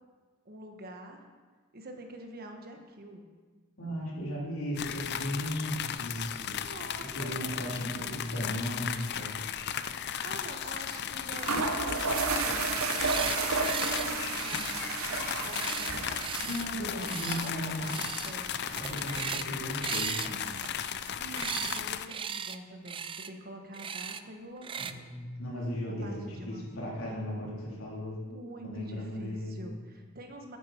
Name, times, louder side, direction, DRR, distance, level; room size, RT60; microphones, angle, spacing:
voice 1, 0.4-1.3 1.7-3.3 6.6-8.5 10.0-14.7 15.0-16.2 16.8-18.5 21.2-25.1 26.0-27.0 28.2-30.6, right 1 dB, 45° right, 4 dB, 1.3 m, -46 dB
voice 2, 3.8-6.6 7.1-9.3 16.4-17.9 18.8-20.5 24.8-28.2 28.6-29.7, equal, 80° left, -4 dB, 3.6 m, -36 dB
sound 1, 4.8-22.1, left 9 dB, 50° left, 0.5 m, -36 dB
sound 2, 9.3-9.5 9.8-9.9 10.9-11.0 11.3-20.7, right 4 dB, 80° right, 1.0 m, -34 dB
sound 3, 12.8-13.4 13.6-14.1 14.3-16.7 17.0-17.5 17.8-18.3 18.6-19.5 19.8-21.8 22.1-22.6 22.9-23.3 23.7-24.2 24.6-24.9, right 7 dB, 25° right, 0.3 m, -37 dB
11.5 x 9.7 x 4.5 m, 1.4 s
head